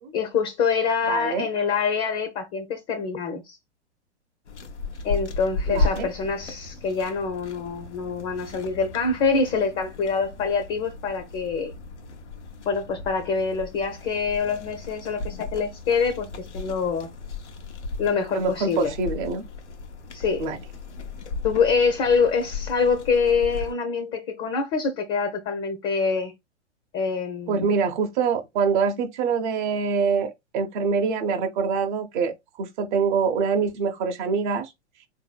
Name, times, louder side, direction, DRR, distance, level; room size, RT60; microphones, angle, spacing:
voice 1, 0.1-3.6 5.0-11.7 12.7-17.1 18.0-18.9 20.1-20.4 21.4-26.3 26.9-27.7, left 5 dB, 25° left, 0.6 m, -25 dB
voice 2, 1.1-1.5 5.7-6.1 18.3-19.4 20.4-20.6 27.5-32.3 32.6-34.7, right 5 dB, 45° right, 0.8 m, -25 dB
sound 1, 4.4-23.7, left 3 dB, 75° left, 0.8 m, -35 dB
4.0 x 2.7 x 2.3 m
figure-of-eight pair, 105°, 35 cm